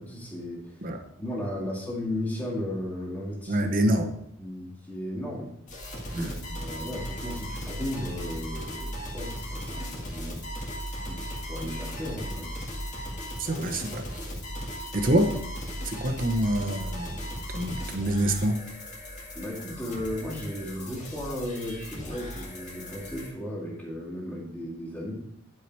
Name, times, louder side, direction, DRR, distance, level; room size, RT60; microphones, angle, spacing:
voice 1, 0.0-0.8 1.2-3.7 4.4-5.5 6.1-10.4 11.1-12.5 19.3-25.1, left 1 dB, 10° left, -5 dB, 2.0 m, -35 dB
voice 2, 3.5-4.1 6.1-6.4 13.4-14.1 14.9-15.4 15.8-17.3 17.5-18.6, right 1 dB, 40° right, 5 dB, 0.9 m, -26 dB
sound 1, 5.7-23.3, equal, 35° left, 1.8 m, -37 dB
10.5 x 4.7 x 4.5 m, 0.76 s
head